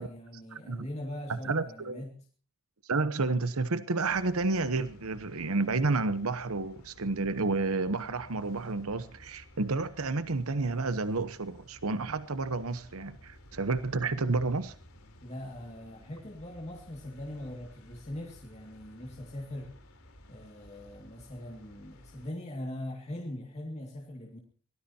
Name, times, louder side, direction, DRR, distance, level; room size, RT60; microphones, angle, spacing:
voice 1, 0.0-2.2 15.2-19.8 20.3-24.4, left 1 dB, 30° left, 2.2 m, -41 dB
voice 2, 0.5-0.9 1.4-2.0 2.9-14.7, right 3 dB, 90° right, 1.0 m, -30 dB
sound 1, 4.0-22.3, left 1 dB, 90° left, 3.7 m, -55 dB
24.0 x 18.0 x 2.8 m
head